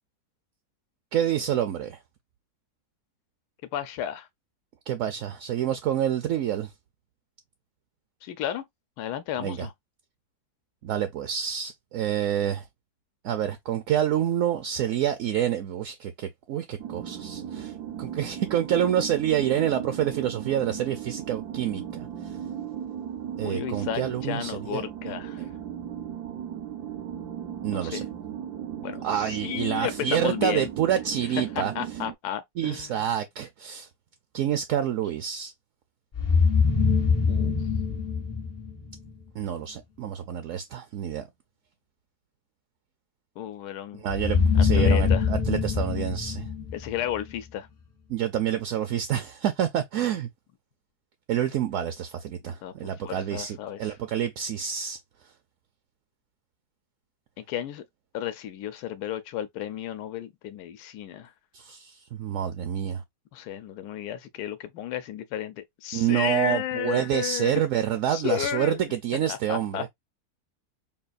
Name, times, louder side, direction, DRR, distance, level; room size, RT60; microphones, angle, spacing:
voice 1, 1.1-2.0 4.9-6.7 9.4-9.7 10.8-12.6 13.2-22.4 23.4-25.5 27.6-28.0 29.0-31.7 32.6-33.9 34.3-35.5 39.3-41.3 44.0-46.5 48.1-50.3 51.3-55.0 61.5-63.0 65.9-69.8, right 10 dB, 70° right, 0.9 m, -28 dB
voice 2, 3.7-4.3 8.2-8.6 9.0-9.7 23.4-25.4 27.7-28.0 28.8-30.7 31.6-33.0 37.3-37.6 43.4-44.0 44.5-45.3 46.7-47.7 52.6-53.9 57.4-57.8 58.1-61.3 63.3-67.6 68.1-68.9 69.3-69.9, left 11 dB, 85° left, 1.1 m, -33 dB
sound 1, 16.8-32.1, right 9 dB, 85° right, 1.2 m, -36 dB
sound 2, 36.1-39.1 44.1-47.3, left 5 dB, 40° left, 0.6 m, -23 dB
5.5 x 2.3 x 2.5 m
omnidirectional pair, 1.7 m